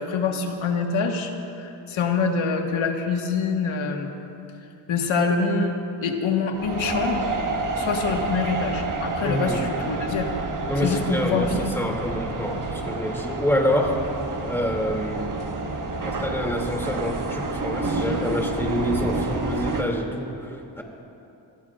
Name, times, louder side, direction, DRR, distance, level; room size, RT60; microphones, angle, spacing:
voice 1, 0.0-4.1 4.9-7.3 7.8-10.3 10.8-11.7, left 4 dB, 75° left, 3 dB, 1.8 m, -25 dB
sound 1, 6.5-19.8, right 3 dB, 40° right, 1.5 m, -29 dB
voice 2, 9.2-9.6 10.7-14.0 14.4-15.4 16.0-20.8, equal, 5° left, 0 dB, 2.7 m, -27 dB
25.0 x 16.5 x 2.5 m, 2.8 s
cardioid pair, 70°, 48 cm